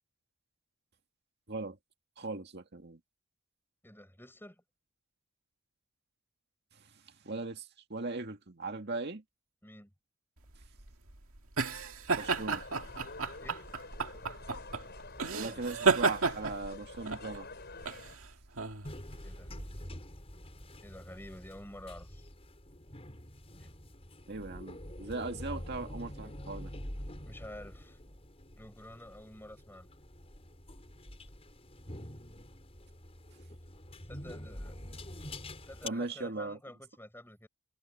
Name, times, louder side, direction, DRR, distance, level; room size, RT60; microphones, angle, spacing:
voice 1, 2.2-3.0 7.2-9.2 12.2-12.6 15.3-17.5 24.3-26.7 35.8-36.6, right 3 dB, 50° right, 2.1 m, -39 dB
voice 2, 3.8-4.6 9.6-9.9 13.4-13.7 15.4-15.7 19.2-19.6 20.8-22.2 23.6-23.7 27.3-28.1 28.5-29.9 34.1-34.8 35.7-37.5, left 1 dB, 10° left, 7.4 m, -49 dB
sound 1, 10.5-19.7, right 4 dB, 70° right, 2.2 m, -33 dB
sound 2, 12.2-18.2, left 3 dB, 45° left, 6.5 m, -48 dB
sound 3, 18.8-35.9, left 1 dB, 25° left, 5.6 m, -46 dB
head